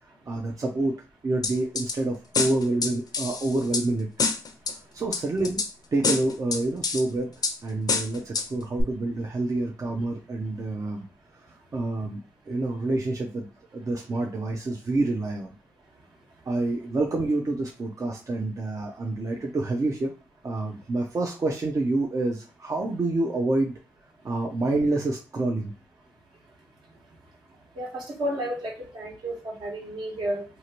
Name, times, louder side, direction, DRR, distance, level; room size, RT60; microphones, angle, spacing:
voice 1, 0.3-0.9 1.2-4.1 4.7-5.6 5.9-7.3 7.6-11.1 11.3-12.2 12.5-15.5 16.5-20.1 20.4-23.8 24.2-25.7, right 2 dB, 40° right, 0 dB, 0.6 m, -28 dB
sound 1, 1.4-2.0 2.3-3.8 4.2-4.7 5.1-5.7 6.0-7.0 7.4-7.6 7.9-8.5 8.8-8.9, left 4 dB, 55° left, 0.6 m, -26 dB
voice 2, 27.7-30.4, right 1 dB, 65° right, -2 dB, 1.3 m, -32 dB
2.7 x 2.4 x 2.9 m, 0.32 s
supercardioid pair, 45°, 8 cm